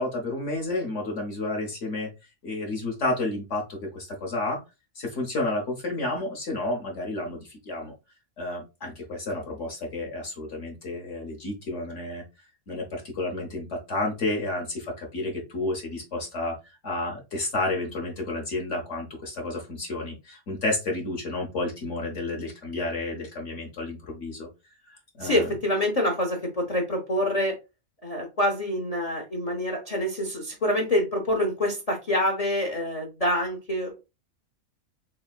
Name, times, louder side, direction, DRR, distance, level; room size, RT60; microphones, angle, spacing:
voice 1, 0.0-2.1 2.4-4.6 4.9-7.9 8.4-12.2 12.7-16.6 16.8-24.5 24.9-25.5, left 2 dB, 60° left, 0 dB, 1.2 m, -31 dB
voice 2, 25.2-27.5 28.0-34.0, left 1 dB, 40° left, 0 dB, 0.5 m, -26 dB
4.2 x 3.5 x 2.3 m, 0.27 s
omnidirectional pair, 1.5 m